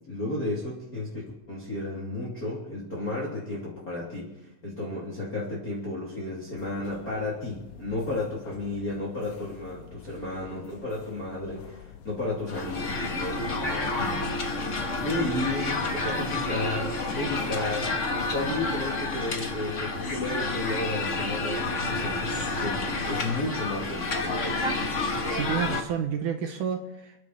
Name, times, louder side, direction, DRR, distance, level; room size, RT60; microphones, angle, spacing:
voice 1, 0.1-14.2 15.0-17.9 18.3-24.6, left 2 dB, 30° left, -6 dB, 3.1 m, -33 dB
sound 1, 6.6-20.2, left 7 dB, 70° left, 2.5 m, -48 dB
sound 2, 12.5-25.8, left 2 dB, 50° left, 0.9 m, -29 dB
voice 2, 25.3-27.3, right 8 dB, 75° right, 4 dB, 2.6 m, -30 dB
29.0 x 10.5 x 4.2 m, 0.88 s
omnidirectional pair, 3.7 m